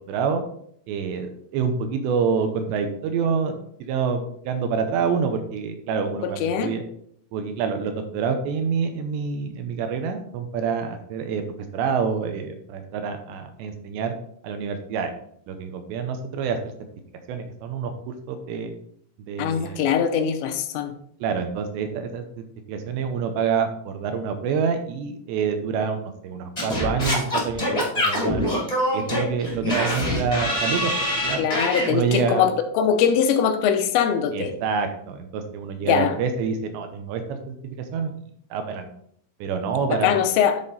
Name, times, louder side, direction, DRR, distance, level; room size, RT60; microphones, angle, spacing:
voice 1, 0.1-0.4 0.9-6.8 7.3-11.4 11.7-14.1 14.4-15.1 15.5-16.7 17.3-17.9 18.3-18.7 19.3-19.9 21.2-22.2 22.7-28.6 28.9-30.9 31.2-31.5 31.9-32.5 34.3-38.9 39.4-40.2, right 6 dB, 80° right, 7 dB, 2.9 m, -27 dB
voice 2, 6.2-6.7 19.4-20.9 31.4-34.5 35.8-36.1 39.9-40.6, left 8 dB, 85° left, 7 dB, 2.9 m, -22 dB
Singing / Scratching (performance technique), 26.6-31.9, left 1 dB, 25° left, 0.7 m, -24 dB
10.5 x 4.3 x 4.1 m, 0.66 s
omnidirectional pair, 5.3 m